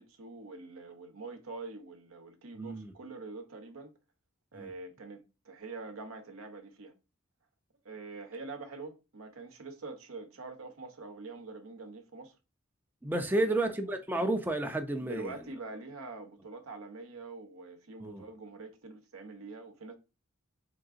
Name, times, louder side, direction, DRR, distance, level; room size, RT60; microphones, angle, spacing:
voice 1, 0.0-3.9 4.5-6.9 7.8-12.4 13.2-13.8 15.0-19.9, right 3 dB, 85° right, 0.8 m, -45 dB
voice 2, 2.6-2.9 4.6-4.7 13.0-15.3 18.0-18.2, right 2 dB, 10° right, 0.4 m, -31 dB
3.8 x 3.6 x 2.5 m
head